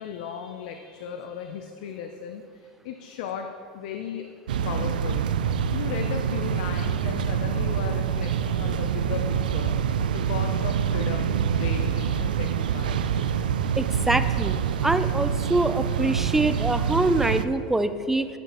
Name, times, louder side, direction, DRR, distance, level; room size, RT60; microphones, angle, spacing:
voice 1, 0.0-4.3 4.6-5.3 5.7-9.7 10.1-13.0, left 7 dB, 65° left, 5 dB, 0.5 m, -36 dB
sound 1, 4.5-17.5, right 7 dB, 85° right, 0.3 m, -26 dB
voice 2, 13.8-14.5 14.8-18.3, right 2 dB, 5° right, 11 dB, 0.4 m, -24 dB
12.0 x 5.1 x 3.0 m, 2.2 s
hypercardioid pair, 100°, 5 cm